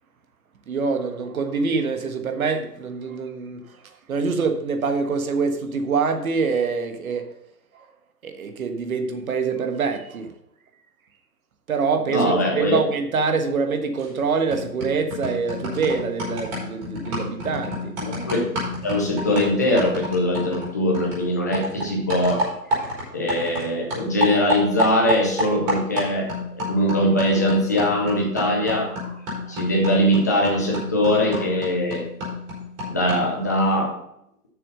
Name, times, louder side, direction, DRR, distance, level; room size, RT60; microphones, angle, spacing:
voice 1, 0.7-3.6 4.1-7.2 8.2-10.3 11.7-17.9, right 5 dB, 60° right, 6 dB, 1.4 m, -25 dB
voice 2, 12.1-12.8 18.0-18.4 18.8-29.1 29.5-32.0 32.9-34.0, left 1 dB, 10° left, -1 dB, 0.6 m, -22 dB
sound 1, 14.0-14.2 14.5-23.7 23.9-33.4, equal, 25° right, 4.1 m, -30 dB
7.4 x 6.6 x 5.4 m, 0.78 s
hypercardioid pair, 155°, 48 cm